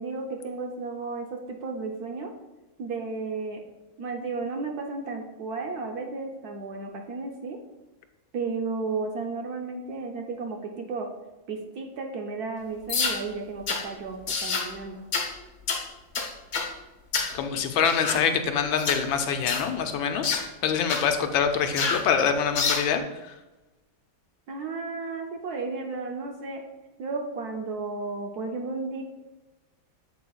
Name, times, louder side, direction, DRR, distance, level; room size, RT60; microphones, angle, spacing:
voice 1, 0.0-2.3 2.8-3.6 4.0-7.6 8.3-11.1 11.5-15.0 24.5-26.6 27.0-29.0, right 4 dB, 65° right, 2 dB, 1.1 m, -33 dB
sound 1, 12.9-13.2 13.7-13.8 14.3-14.7 15.1-15.3 15.7-15.8 16.1-16.7 17.1-17.3 17.8-18.2 18.8-19.0 19.5-19.7 20.2-20.4 20.9-21.1 21.8-22.0 22.5-22.9, left 5 dB, 50° left, 1.0 m, -27 dB
voice 2, 17.3-23.0, left 7 dB, 85° left, 6 dB, 1.4 m, -25 dB
8.0 x 7.6 x 2.3 m, 1.1 s
omnidirectional pair, 2.2 m